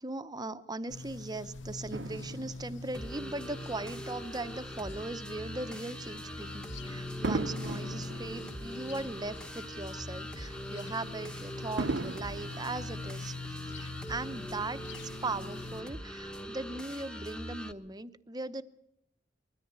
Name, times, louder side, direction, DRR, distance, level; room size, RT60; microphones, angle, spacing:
voice 1, 0.0-14.8 15.2-18.6, right 2 dB, 20° right, 12 dB, 0.8 m, -39 dB
sound 1, 0.9-15.8, left 3 dB, 80° left, 0.9 m, -44 dB
Fireworks, 1.9-4.5 5.1-5.4 7.2-9.7 10.1-10.2 11.8-13.7 14.4-14.5, right 3 dB, 70° right, 0.8 m, -39 dB
sound 2, 2.9-17.7, equal, 5° left, 1.2 m, -43 dB
21.5 x 13.5 x 9.5 m, 0.78 s
head